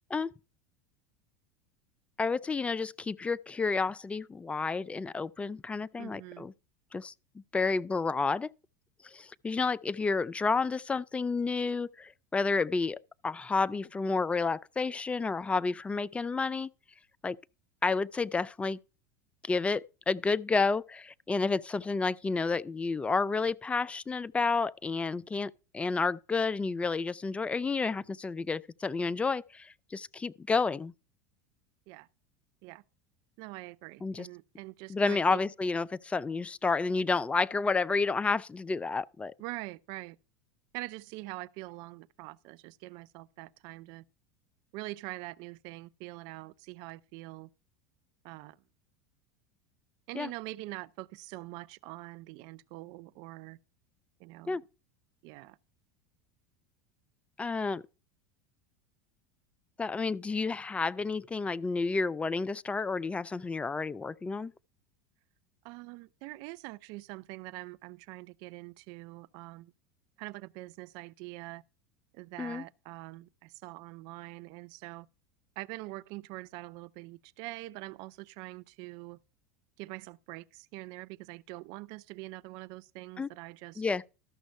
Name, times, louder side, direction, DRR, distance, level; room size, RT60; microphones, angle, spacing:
voice 1, 2.2-6.5 6.9-7.1 7.5-8.5 9.0-16.7 17.2-17.4 17.8-18.8 19.4-30.9 34.0-34.3 34.9-39.3 50.1-50.3 54.5-54.6 57.4-57.8 59.8-64.5 72.4-72.6 83.2-83.3 83.8-84.0, left 4 dB, 15° left, 0.4 m, -30 dB
voice 2, 6.0-6.5 31.9-32.1 32.6-32.8 33.4-35.4 39.4-40.2 40.7-44.0 44.7-47.5 48.2-48.6 50.1-53.6 54.2-54.6 55.2-55.6 65.6-69.7 70.2-71.6 72.1-75.1 75.6-79.2 79.8-83.8, right 20 dB, 60° right, 0.5 m, -44 dB
13.0 x 6.1 x 4.5 m
hypercardioid pair, 95°, 9 cm